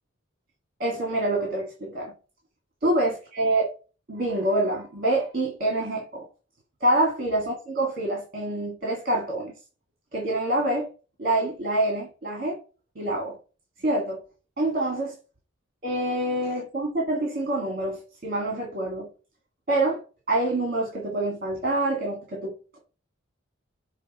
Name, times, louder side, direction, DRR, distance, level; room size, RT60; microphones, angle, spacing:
voice 1, 0.8-2.1 2.8-3.7 4.1-6.3 6.8-9.5 10.1-10.9 11.2-12.6 13.0-13.4 13.8-14.2 14.6-15.1 15.8-19.1 19.7-20.0 20.3-22.8, right 1 dB, 45° right, 1.9 m, -26 dB
6.4 x 3.4 x 5.3 m
head